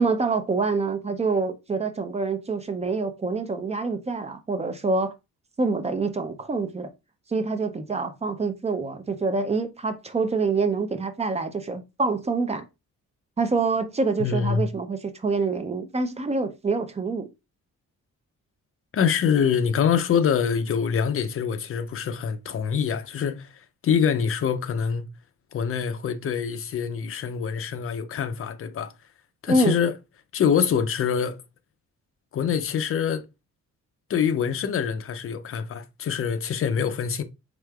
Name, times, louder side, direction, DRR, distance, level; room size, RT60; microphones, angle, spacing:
voice 1, 0.0-5.1 5.6-6.9 7.3-12.6 13.4-17.3 29.5-29.8, right 3 dB, 20° right, 0.4 m, -26 dB
voice 2, 14.2-14.7 18.9-25.0 25.5-28.9 29.4-29.9 30.3-31.4 32.3-33.3 34.1-37.2, left 7 dB, 45° left, 0.5 m, -25 dB
4.9 x 3.6 x 2.3 m
wide cardioid pair, 165°, 30 cm